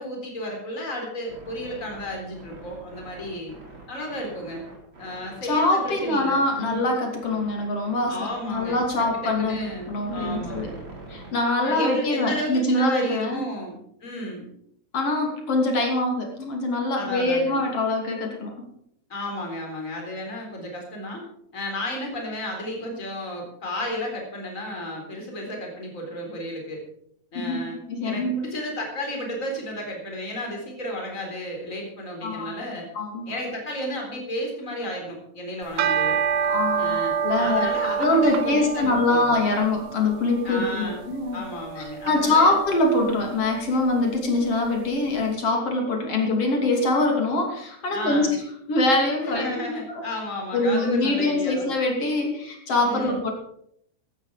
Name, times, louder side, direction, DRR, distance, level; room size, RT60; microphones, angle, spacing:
voice 1, 0.0-3.5 3.9-4.6 5.0-6.9 8.1-10.7 11.6-14.5 17.0-17.6 19.1-21.2 21.5-26.8 27.3-27.8 28.0-32.9 33.3-36.2 36.8-39.3 40.4-41.1 41.3-42.5 47.9-48.4 49.2-51.7 52.8-53.2, left 1 dB, 25° left, 1 dB, 4.2 m, -33 dB
sound 1, 1.3-11.3, right 3 dB, 35° right, 4.9 m, -44 dB
voice 2, 5.5-9.6 9.9-10.7 11.1-13.4 14.9-18.5 27.4-28.5 32.2-32.5 33.0-33.3 36.5-37.7 38.0-41.4 41.8-48.3 48.7-49.5 50.0-50.1 50.5-53.3, left 2 dB, 50° left, 1 dB, 3.7 m, -24 dB
sound 2, 35.6-45.0, right 7 dB, 70° right, 1.9 m, -29 dB
15.5 x 12.0 x 5.0 m, 0.72 s
omnidirectional pair, 3.6 m